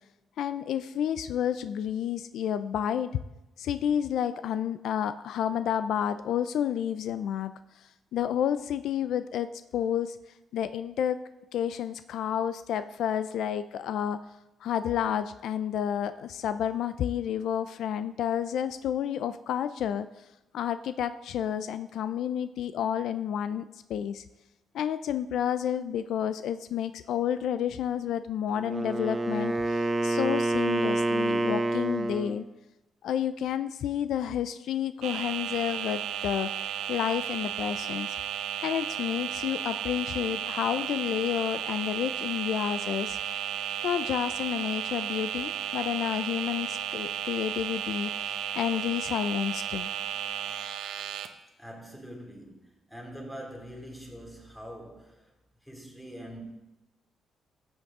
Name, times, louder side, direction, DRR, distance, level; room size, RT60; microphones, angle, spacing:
voice 1, 0.4-3.2 3.6-7.5 7.8-10.2 10.5-11.2 11.5-14.2 14.6-20.1 20.5-23.6 23.9-24.2 24.7-32.4 33.0-36.5 36.9-38.2 38.6-43.2 43.8-49.9, left 9 dB, 75° left, 0.4 m, -30 dB
Wind instrument woodwind instrument, 28.5-32.4, right 2 dB, 20° right, 0.6 m, -28 dB
sound 1, 35.0-51.3, right 9 dB, 85° right, 0.7 m, -34 dB
voice 2, 51.6-55.3 55.6-56.4, equal, 5° left, 2.6 m, -44 dB
14.0 x 7.9 x 3.6 m
cardioid pair, 115°, 0 cm